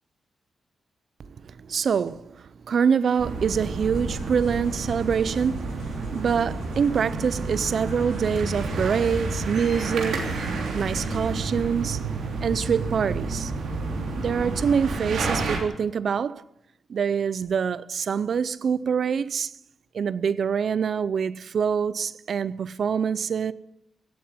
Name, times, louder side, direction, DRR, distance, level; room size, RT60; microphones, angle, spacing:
voice 1, 1.3-10.5 10.7-12.0 12.4-13.5 14.2-16.4 16.9-19.5 19.9-23.5, right 6 dB, 50° right, 0.5 m, -25 dB
sound 1, 3.2-15.6, right 3 dB, 80° right, 3.2 m, -30 dB
sound 2, 3.9-11.3, left 3 dB, 75° left, 5.2 m, -41 dB
17.0 x 8.6 x 9.5 m
wide cardioid pair, 170°, 0 cm